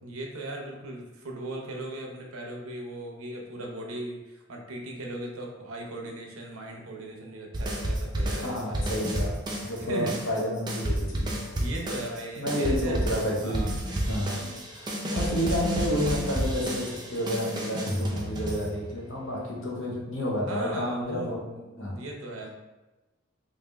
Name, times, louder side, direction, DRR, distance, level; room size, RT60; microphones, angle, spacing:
voice 1, 0.0-8.9 9.8-10.2 11.6-13.0 13.4-13.8 20.5-22.5, right 1 dB, 90° right, 1 dB, 0.7 m, -38 dB
sound 1, 7.5-9.8 10.1-19.1, right 1 dB, 20° right, 0.4 m, -31 dB
voice 2, 8.3-11.4 12.4-13.7 14.1-21.4 21.8-22.0, equal, 65° left, -3 dB, 0.9 m, -30 dB
3.4 x 2.6 x 3.4 m, 1.1 s
head